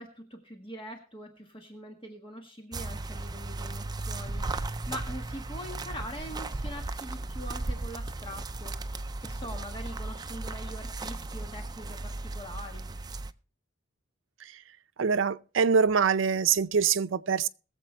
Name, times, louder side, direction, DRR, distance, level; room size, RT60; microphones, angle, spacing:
voice 1, 0.0-12.9, equal, 25° left, 1.6 m, -43 dB
sound 1, 2.7-13.3, right 2 dB, 20° right, 0.5 m, -36 dB
voice 2, 15.0-17.5, right 6 dB, 75° right, 0.5 m, -24 dB
21.5 x 7.6 x 3.3 m
head